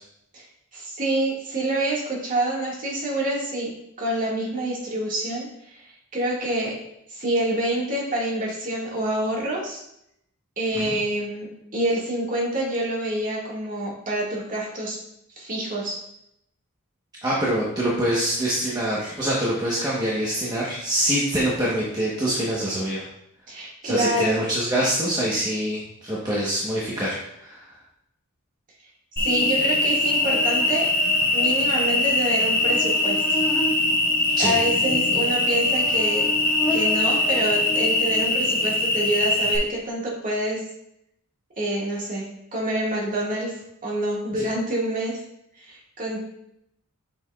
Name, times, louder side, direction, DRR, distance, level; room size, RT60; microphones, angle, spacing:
voice 1, 0.7-5.9 6.1-6.8 7.1-9.8 10.6-15.0 15.4-16.0 23.5-24.4 29.2-30.9 31.3-33.4 34.4-36.3 36.7-40.6 41.6-43.6 43.8-45.2 45.6-46.2, right 1 dB, 35° right, -4 dB, 1.9 m, -27 dB
voice 2, 17.2-23.1 23.8-27.6 34.4-34.5, right 1 dB, 15° right, -6 dB, 1.0 m, -25 dB
Cricket, 29.2-39.6, left 2 dB, 10° left, 1.8 m, -22 dB
7.4 x 6.1 x 2.4 m, 0.77 s
head